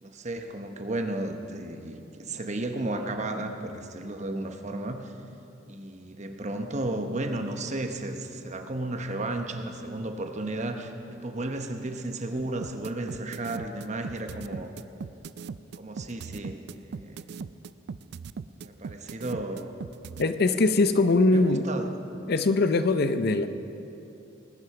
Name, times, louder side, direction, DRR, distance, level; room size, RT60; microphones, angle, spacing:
voice 1, 0.0-5.1 5.7-14.7 15.8-17.4 18.7-19.7 21.3-22.0, right 2 dB, 40° right, 6 dB, 1.0 m, -33 dB
sound 1, 12.6-20.2, right 5 dB, 60° right, 0.3 m, -38 dB
voice 2, 20.2-21.7 22.3-23.5, left 2 dB, 55° left, 10 dB, 0.6 m, -22 dB
20.0 x 9.7 x 5.9 m, 2.8 s
head